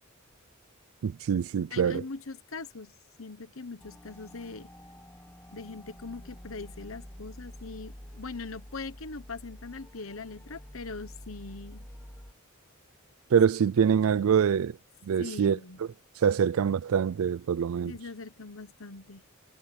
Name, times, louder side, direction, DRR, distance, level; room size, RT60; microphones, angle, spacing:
voice 1, 1.0-2.0 13.3-14.8 15.0-15.6 16.2-18.0, right 7 dB, 80° right, 0.4 m, -25 dB
voice 2, 1.7-4.7 5.5-11.9 15.2-15.8 17.9-19.2, left 3 dB, 70° left, 1.2 m, -41 dB
sound 1, 3.8-12.3, equal, 10° left, 1.2 m, -48 dB
head